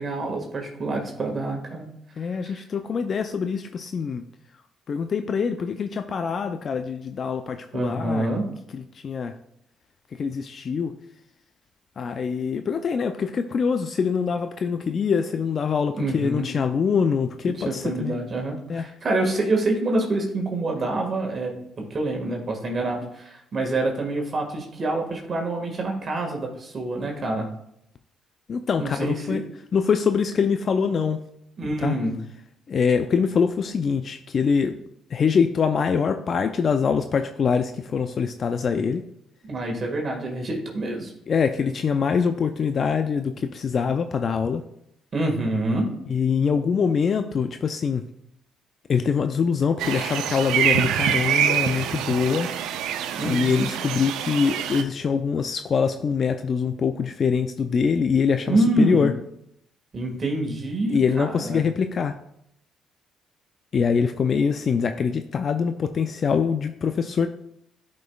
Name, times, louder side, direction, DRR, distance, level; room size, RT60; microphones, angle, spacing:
voice 1, 0.0-1.9 2.4-2.5 7.7-8.5 15.9-16.5 17.6-21.5 21.8-27.5 28.8-29.4 31.6-32.2 39.4-41.1 45.1-45.9 53.2-53.6 58.5-59.1 59.9-61.6, right 2 dB, 45° right, 0 dB, 1.7 m, -26 dB
voice 2, 2.2-4.2 4.9-8.3 8.7-9.3 10.1-10.9 12.0-18.1 18.7-18.9 28.5-29.4 29.7-31.2 31.8-32.0 32.7-34.7 35.1-39.0 41.3-44.6 46.1-48.0 48.9-52.5 53.2-59.1 60.9-62.1 63.7-67.3, left 6 dB, 50° left, 8 dB, 0.4 m, -24 dB
sound 1, 49.8-54.8, right 9 dB, 80° right, 0.4 m, -25 dB
10.5 x 5.3 x 2.3 m, 0.77 s
supercardioid pair, 65°, 0 cm